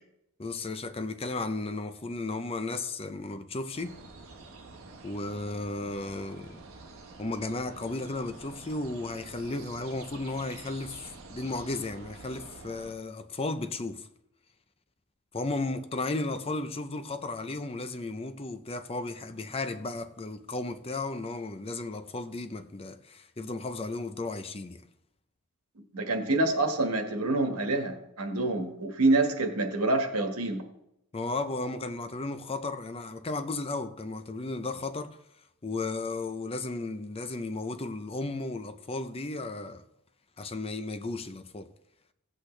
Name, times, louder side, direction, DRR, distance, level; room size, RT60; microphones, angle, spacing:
voice 1, 0.4-4.0 5.0-6.6 7.2-14.1 15.3-24.8 31.1-35.2 35.6-39.8 40.4-41.7, left 2 dB, 25° left, 0.6 m, -34 dB
sound 1, 3.7-12.9, right 3 dB, 60° right, 1.4 m, -48 dB
voice 2, 25.9-30.6, right 2 dB, 85° right, 1.6 m, -27 dB
16.0 x 8.2 x 3.3 m
head